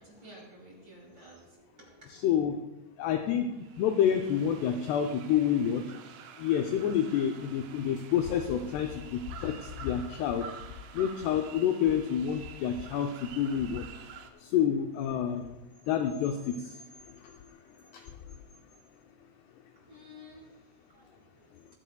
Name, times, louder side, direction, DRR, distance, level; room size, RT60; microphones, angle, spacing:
voice 1, 0.0-2.1 19.8-21.8, equal, 25° right, -4 dB, 5.3 m, -53 dB
voice 2, 2.2-2.6 3.0-5.8 6.4-10.5 10.9-13.9 14.4-15.6 15.9-16.8 17.9-18.0, left 9 dB, 85° left, 5 dB, 2.4 m, -28 dB
sound 1, 3.6-14.3, right 7 dB, 75° right, 3.2 m, -49 dB
24.5 x 10.0 x 2.3 m, 1.0 s
omnidirectional pair, 5.5 m